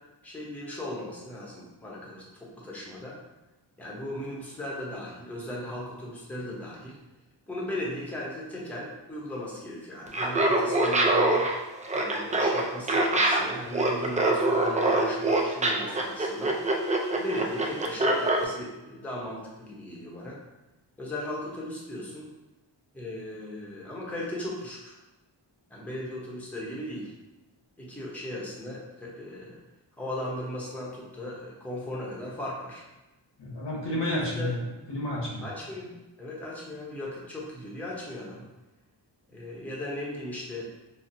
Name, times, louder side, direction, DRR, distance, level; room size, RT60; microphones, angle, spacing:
voice 1, 0.2-3.2 3.8-7.0 7.5-11.5 11.9-16.6 17.1-20.4 21.0-22.3 22.9-25.0 25.7-27.1 27.8-29.6 30.0-32.8 33.8-34.5 35.4-38.5 39.3-40.7, left 1 dB, 5° left, -5 dB, 0.7 m, -37 dB
Laughter, 10.1-18.4, right 2 dB, 20° right, 0.3 m, -24 dB
voice 2, 33.4-35.5, left 1 dB, 70° left, -4 dB, 0.8 m, -31 dB
4.1 x 2.0 x 2.6 m, 1.0 s
wide cardioid pair, 85°, 45 cm